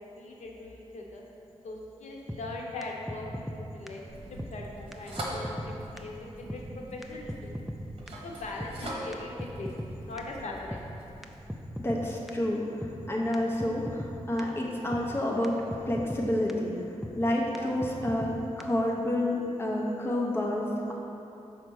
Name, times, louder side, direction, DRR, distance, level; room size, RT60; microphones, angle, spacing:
voice 1, 0.1-1.2 1.6-7.6 8.2-10.8 17.5-17.7, left 2 dB, 80° left, -1 dB, 0.8 m, -41 dB
sound 1, 2.3-2.4 2.8-2.9 3.1-3.6 3.9-4.0 4.4-4.5 4.9-5.0 5.2-5.7 6.0-6.1 6.5-6.6 7.0-7.1 7.3-7.8 8.1-8.2 8.6-8.7 9.1-9.9 10.2-10.3 10.7-10.8 11.2-11.3 11.5-12.0 12.3-12.4 12.8-12.9 13.3-13.4 13.6-14.1 14.4-14.5 14.9-15.0 15.4-15.5 15.7-16.2 16.5-16.6 17.0-17.1 17.5-17.6 17.8-18.3 18.6-18.7, equal, ahead, 0.3 m, -37 dB
sound 2, 4.1-11.4, right 1 dB, 50° right, 1.1 m, -43 dB
voice 2, 11.8-15.6 15.8-16.8 17.2-20.9, left 1 dB, 20° left, -2 dB, 0.8 m, -29 dB
5.6 x 4.3 x 6.2 m, 2.9 s
wide cardioid pair, 165°, 12 cm